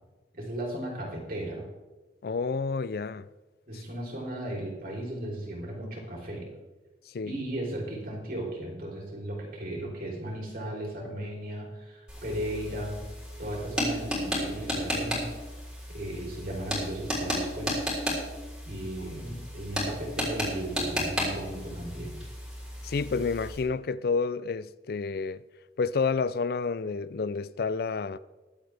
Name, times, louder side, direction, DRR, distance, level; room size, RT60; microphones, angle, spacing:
voice 1, 0.3-1.6 3.7-6.5 7.2-13.0 13.4-15.3 15.9-17.8 18.7-22.2, right 1 dB, 55° right, 3.5 m, -36 dB
voice 2, 2.2-3.3 7.1-7.4 22.8-25.4 25.8-28.2, left 4 dB, 60° left, 0.4 m, -29 dB
sound 1, 12.1-23.6, equal, 5° right, 3.8 m, -33 dB
21.5 x 8.0 x 3.4 m
head